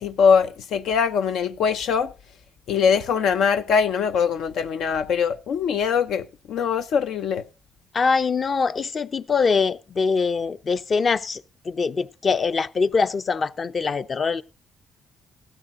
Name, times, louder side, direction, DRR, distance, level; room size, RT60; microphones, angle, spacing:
voice 1, 0.0-2.1 2.7-7.4, left 6 dB, 80° left, 0.6 m, -22 dB
voice 2, 7.9-11.4 11.7-14.4, left 5 dB, 40° left, 0.7 m, -23 dB
16.0 x 13.0 x 2.6 m
cardioid pair, 90°, 0 cm